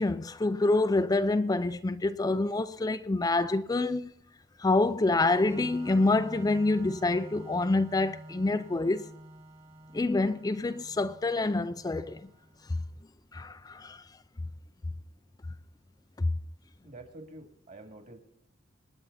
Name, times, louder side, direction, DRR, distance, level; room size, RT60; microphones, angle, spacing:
voice 1, 0.0-4.1 4.6-9.1 9.9-12.3 12.7-12.8 13.3-14.1 16.2-16.3, left 2 dB, 20° left, 0.4 m, -27 dB
Organ, 5.2-12.7, right 1 dB, 30° right, 1.8 m, -48 dB
voice 2, 16.8-18.2, right 2 dB, 45° right, 2.6 m, -48 dB
26.5 x 9.4 x 4.1 m
head